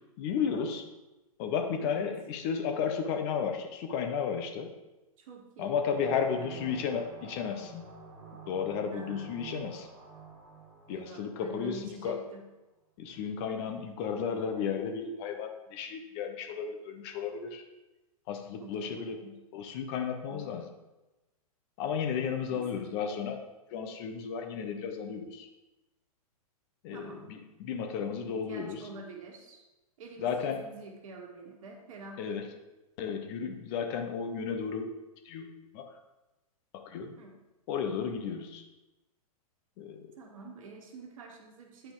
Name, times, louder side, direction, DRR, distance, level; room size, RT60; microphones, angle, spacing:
voice 1, 0.2-0.8 1.4-4.7 5.6-7.9 8.5-9.9 10.9-12.2 13.0-17.6 18.3-19.2 19.5-20.7 21.8-23.4 23.7-25.5 26.8-28.9 30.2-30.6 32.2-32.4 33.0-34.9 35.2-35.5 35.7-35.8 36.7-37.2 37.7-38.6 39.8-40.0, left 6 dB, 45° left, 5 dB, 1.0 m, -33 dB
voice 2, 1.8-2.1 5.2-6.7 8.9-9.3 10.9-12.4 18.6-19.4 20.3-20.7 22.5-22.6 26.9-27.3 27.8-27.9 28.3-29.6 30.0-32.4 37.2-37.3 40.2-41.9, right 2 dB, 60° right, 1 dB, 1.5 m, -47 dB
sound 1, 5.8-11.9, right 5 dB, 40° right, 1.7 m, -48 dB
9.0 x 4.6 x 3.9 m, 1.0 s
hypercardioid pair, 115°, 19 cm